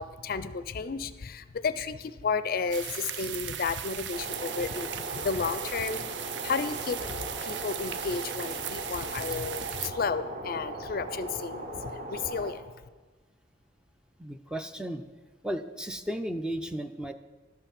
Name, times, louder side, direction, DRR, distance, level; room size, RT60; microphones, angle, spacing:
voice 1, 0.0-6.1 6.4-12.6, left 5 dB, 50° left, 13 dB, 0.4 m, -32 dB
sound 1, 2.7-9.9, right 10 dB, 65° right, 0.5 m, -38 dB
sound 2, 4.1-12.5, right 1 dB, 45° right, 1.3 m, -38 dB
voice 2, 14.2-15.1 15.4-17.1, equal, 5° right, 8 dB, 0.4 m, -34 dB
11.5 x 5.8 x 7.2 m, 1.3 s
head